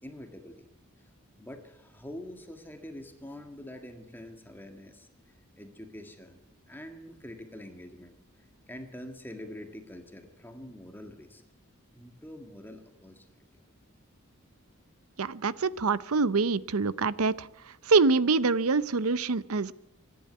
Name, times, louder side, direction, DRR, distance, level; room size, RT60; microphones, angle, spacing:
voice 1, 0.0-0.7 1.0-6.4 6.7-8.2 8.7-11.4 11.9-13.3 13.5-13.6, left 1 dB, 10° left, 5 dB, 1.8 m, -45 dB
voice 2, 15.2-17.5 17.9-19.7, right 4 dB, 90° right, 18 dB, 0.7 m, -25 dB
25.0 x 11.0 x 9.5 m, 0.85 s
head